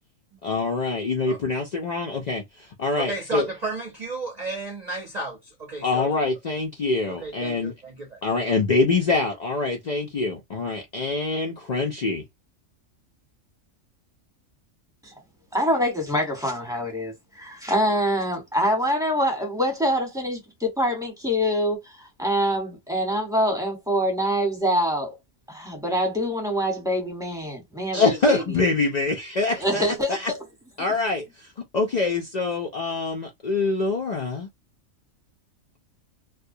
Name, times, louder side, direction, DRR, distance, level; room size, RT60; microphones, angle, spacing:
voice 1, 0.4-2.4 2.8-3.5 5.8-7.7 8.2-12.2 27.9-30.3 30.8-31.5 31.7-34.5, left 3 dB, 80° left, 0.3 m, -25 dB
voice 2, 3.0-6.1 7.2-8.2, right 3 dB, 45° right, 0.6 m, -33 dB
voice 3, 15.5-25.1 25.5-28.4 29.5-30.4, equal, 5° right, 0.9 m, -25 dB
2.3 x 2.1 x 2.6 m
omnidirectional pair, 1.4 m